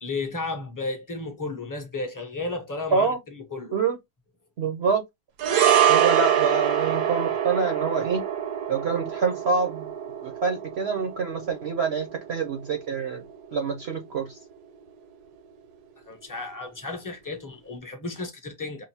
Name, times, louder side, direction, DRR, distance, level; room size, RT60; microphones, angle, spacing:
voice 1, 0.0-3.8 16.1-18.8, left 3 dB, 20° left, 0.6 m, -33 dB
voice 2, 4.6-5.0 5.9-8.2 8.7-9.9 10.2-13.2 13.5-14.2, right 5 dB, 55° right, 0.8 m, -26 dB
sound 1, 5.4-13.9 14.1-14.3, right 9 dB, 75° right, 1.2 m, -25 dB
5.0 x 2.6 x 2.7 m
omnidirectional pair, 1.8 m